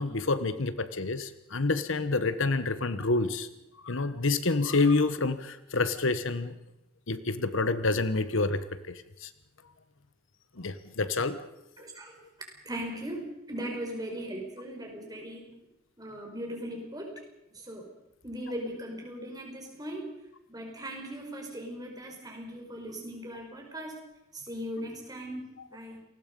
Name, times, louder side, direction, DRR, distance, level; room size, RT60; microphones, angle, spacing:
voice 1, 0.0-3.5 3.8-6.5 7.1-9.3 10.6-11.5, left 3 dB, 65° left, 13 dB, 1.1 m, -28 dB
voice 2, 11.8-12.1 12.6-15.6 16.0-17.1 17.5-17.9 18.2-20.1 20.5-24.0 24.3-26.0, equal, 20° right, 1 dB, 4.8 m, -39 dB
28.5 x 20.0 x 5.3 m, 0.88 s
head